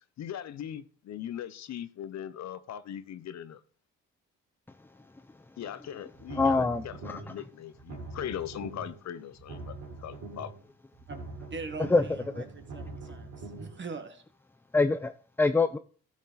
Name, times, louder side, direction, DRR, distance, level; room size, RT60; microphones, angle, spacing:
voice 1, 0.2-3.6 5.6-10.5, left 10 dB, 65° left, 0.8 m, -40 dB
sound 1, 6.1-7.4 7.7-9.0 9.3-10.6 10.9-13.8, right 3 dB, 70° right, 4.0 m, -43 dB
voice 2, 6.4-7.2 11.9-12.0 14.7-15.8, left 3 dB, 5° left, 0.4 m, -25 dB
voice 3, 11.5-14.2, right 4 dB, 40° right, 1.6 m, -42 dB
13.0 x 6.3 x 4.0 m
cardioid pair, 90°, 30 cm